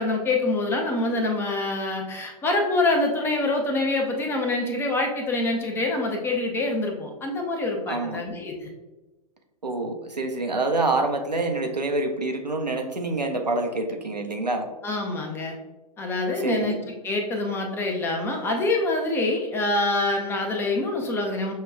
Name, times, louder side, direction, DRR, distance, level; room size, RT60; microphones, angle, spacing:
voice 1, 0.0-8.7 14.8-15.5 16.0-16.8 17.0-21.5, left 2 dB, 10° left, 2 dB, 0.5 m, -25 dB
voice 2, 7.9-8.2 9.6-14.7 16.4-16.8, right 2 dB, 90° right, 3 dB, 0.6 m, -26 dB
6.3 x 2.2 x 2.2 m, 1.1 s
figure-of-eight pair, 110°, 21 cm